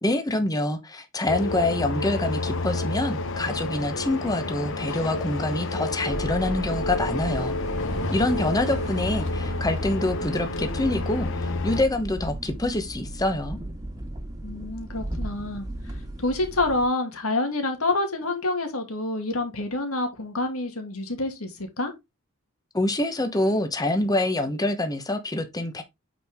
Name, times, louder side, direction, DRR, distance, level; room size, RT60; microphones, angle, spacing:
voice 1, 0.0-7.6 8.1-13.6 22.7-25.8, left 1 dB, 15° left, 0.9 m, -26 dB
sound 1, 1.3-11.8, left 2 dB, 65° left, 0.9 m, -29 dB
sound 2, 6.1-16.9, right 1 dB, 15° right, 1.6 m, -35 dB
voice 2, 14.4-21.9, left 2 dB, 85° left, 2.2 m, -28 dB
9.1 x 4.5 x 3.5 m
head